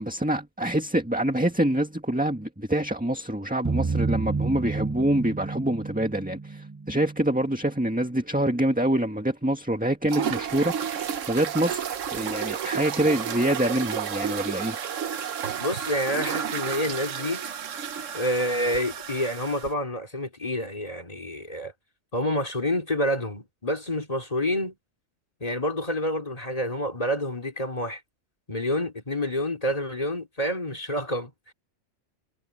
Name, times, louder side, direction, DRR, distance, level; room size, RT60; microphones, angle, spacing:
voice 1, 0.0-11.8 12.1-14.8, right 1 dB, 5° right, 1.8 m, -26 dB
sound 1, 3.6-7.4, right 4 dB, 25° right, 0.4 m, -30 dB
sound 2, 10.1-19.7, right 8 dB, 85° right, 1.3 m, -31 dB
voice 2, 15.6-17.4 18.1-21.7 22.1-24.7 25.4-28.0 28.5-31.5, left 1 dB, 30° left, 2.8 m, -28 dB
omnidirectional pair, 1.3 m